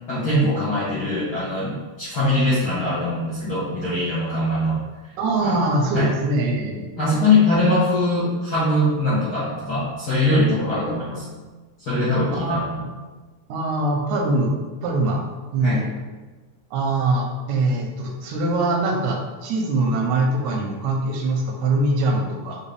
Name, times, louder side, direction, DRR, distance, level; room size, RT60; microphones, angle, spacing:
voice 1, 0.1-4.8 5.4-5.6 5.9-6.1 7.0-11.3 11.8-12.6 15.6-15.9, left 1 dB, 65° left, -11 dB, 1.0 m, -22 dB
voice 2, 5.2-6.9 12.3-12.9 13.5-14.5 14.8-15.2 15.5-15.9 16.7-22.6, right 2 dB, 85° right, 2 dB, 2.1 m, -23 dB
5.3 x 2.6 x 3.3 m, 1.3 s
omnidirectional pair, 3.4 m